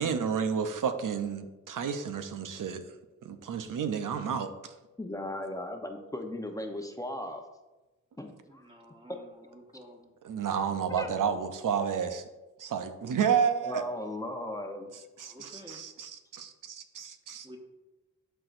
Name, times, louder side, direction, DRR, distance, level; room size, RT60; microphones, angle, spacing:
voice 1, 0.0-2.8 3.2-4.7 10.2-12.2 12.6-13.8 15.2-17.6, right 7 dB, 85° right, 9 dB, 0.7 m, -31 dB
voice 2, 5.0-7.4 8.2-8.6 9.1-9.2 11.0-11.1 13.6-14.9, left 1 dB, 10° left, 4 dB, 0.8 m, -37 dB
voice 3, 8.5-10.1 15.2-15.8 17.4-17.6, equal, 15° right, 0 dB, 1.5 m, -51 dB
12.0 x 4.5 x 2.6 m, 1.1 s
cardioid pair, 65°, 31 cm